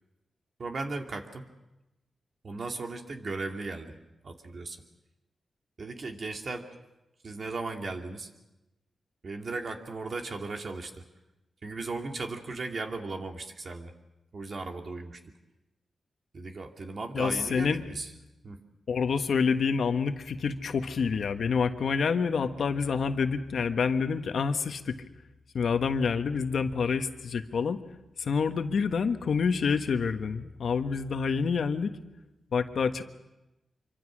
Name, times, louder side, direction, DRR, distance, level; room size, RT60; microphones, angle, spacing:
voice 1, 0.6-1.4 2.4-3.9 4.2-4.8 5.8-6.7 7.2-8.3 9.2-11.0 11.6-13.9 14.3-15.2 16.3-18.1 18.4-18.6, right 3 dB, 55° right, 3 dB, 2.6 m, -36 dB
voice 2, 17.1-17.8 18.9-25.0 25.5-27.8 28.2-31.9 32.5-33.0, left 5 dB, 75° left, 7 dB, 1.4 m, -27 dB
26.0 x 24.5 x 6.3 m, 0.98 s
wide cardioid pair, 90°, 0 cm